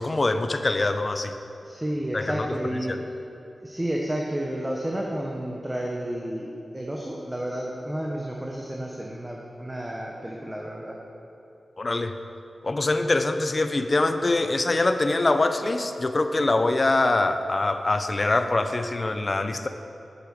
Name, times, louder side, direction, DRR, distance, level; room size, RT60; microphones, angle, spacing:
voice 1, 0.0-1.3 2.1-2.5 2.9-3.0 11.8-12.1 12.6-19.7, left 2 dB, 40° left, 8 dB, 0.7 m, -24 dB
voice 2, 1.6-3.0 3.6-11.0, right 1 dB, 15° right, -1 dB, 1.1 m, -31 dB
9.1 x 8.5 x 6.4 m, 2.8 s
wide cardioid pair, 70°, 0 cm